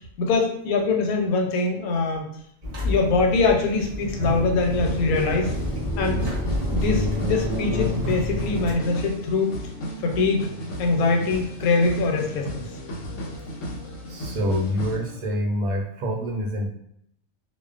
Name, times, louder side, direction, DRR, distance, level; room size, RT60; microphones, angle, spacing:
voice 1, 0.2-2.3 2.8-5.5 6.0-6.2 6.7-9.5 10.0-10.5 10.8-12.7, left 3 dB, 90° left, 2 dB, 1.0 m, -23 dB
sound 1, 2.6-8.8, left 1 dB, 40° right, 0.6 m, -28 dB
sound 2, 4.6-15.0, equal, 65° left, 0.9 m, -35 dB
sound 3, 8.7-15.4, right 1 dB, 35° left, 0.7 m, -43 dB
voice 2, 14.1-16.7, equal, 85° right, 2 dB, 1.0 m, -26 dB
2.4 x 2.1 x 2.4 m, 0.72 s
omnidirectional pair, 1.5 m